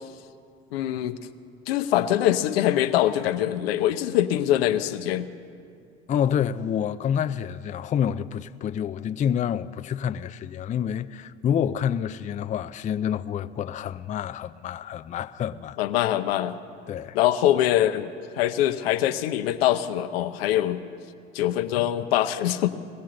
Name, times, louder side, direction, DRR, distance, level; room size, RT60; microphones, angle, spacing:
voice 1, 0.7-1.2 1.7-5.3 15.8-16.6 17.1-20.8 21.3-22.7, left 12 dB, 80° left, 0.7 m, -23 dB
voice 2, 6.1-15.8 16.9-17.2, left 9 dB, 25° left, 0.4 m, -28 dB
20.5 x 16.0 x 3.8 m
hypercardioid pair, 75°, 30 cm